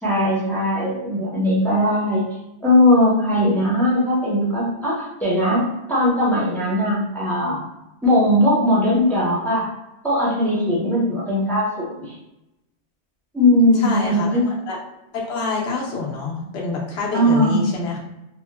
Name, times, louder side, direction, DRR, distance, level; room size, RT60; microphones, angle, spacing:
voice 1, 0.0-2.2 2.6-5.6 5.9-7.7 8.0-9.7 10.0-12.1 13.3-14.4 17.1-17.7, left 1 dB, ahead, -7 dB, 0.6 m, -19 dB
voice 2, 13.7-14.8 15.1-18.0, left 4 dB, 70° left, -3 dB, 0.9 m, -26 dB
3.5 x 2.1 x 2.2 m, 0.93 s
omnidirectional pair, 1.3 m